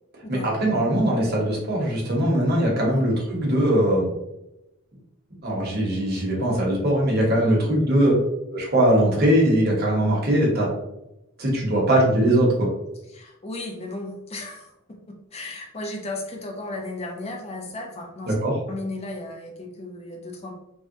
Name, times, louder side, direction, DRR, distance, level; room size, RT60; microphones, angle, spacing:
voice 1, 0.3-4.1 5.4-8.1 8.5-10.7 11.4-12.7 18.3-18.6, right 1 dB, 45° right, -3 dB, 0.9 m, -21 dB
voice 2, 13.1-18.4 18.7-20.5, left 2 dB, 30° left, 2 dB, 0.4 m, -35 dB
3.4 x 2.1 x 2.6 m, 0.88 s
head